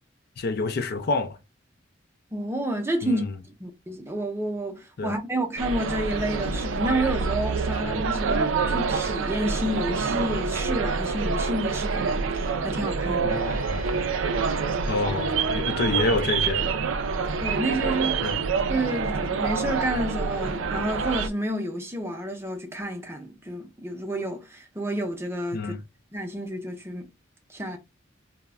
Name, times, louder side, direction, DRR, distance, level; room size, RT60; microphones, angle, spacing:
voice 1, 0.4-1.4 3.0-3.3 5.0-5.2 7.7-8.0 13.2-13.9 14.9-16.8 18.2-18.4 25.5-25.8, left 3 dB, 55° left, 0.4 m, -28 dB
voice 2, 2.3-3.2 3.6-13.3 17.4-18.4 18.7-25.7 26.1-27.1 27.5-27.8, right 1 dB, 15° right, 0.5 m, -30 dB
sound 1, 5.6-21.3, right 5 dB, 80° right, 0.4 m, -27 dB
sound 2, 13.3-21.3, left 1 dB, 45° right, 0.8 m, -47 dB
2.2 x 2.1 x 3.4 m
head